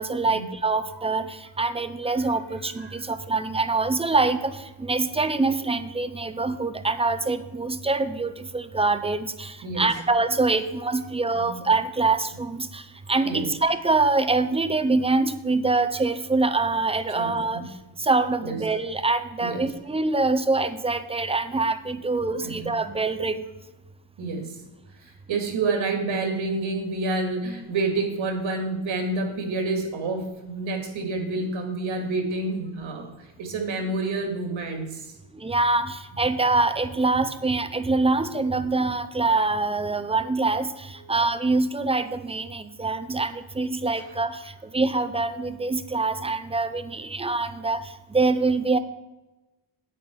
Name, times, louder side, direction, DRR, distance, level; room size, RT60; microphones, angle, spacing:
voice 1, 0.0-17.7 18.0-23.4 35.3-48.8, right 3 dB, 15° right, 11 dB, 0.5 m, -25 dB
voice 2, 17.1-17.7 18.4-18.6 19.4-19.7 22.4-22.7 24.2-24.6 25.0-33.1 33.4-35.1, right 3 dB, 70° right, 4 dB, 2.5 m, -28 dB
9.2 x 9.0 x 4.7 m, 1.1 s
wide cardioid pair, 140°, 48 cm